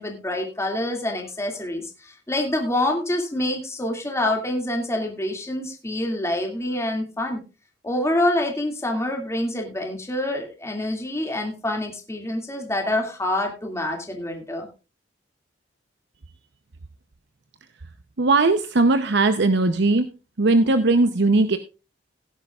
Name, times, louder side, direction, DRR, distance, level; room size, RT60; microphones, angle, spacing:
voice 1, 0.0-7.4 7.8-14.7, left 1 dB, 15° left, 2 dB, 2.3 m, -26 dB
voice 2, 18.2-20.1 20.4-21.6, right 3 dB, 65° right, 10 dB, 0.8 m, -19 dB
17.0 x 10.5 x 2.4 m, 0.31 s
head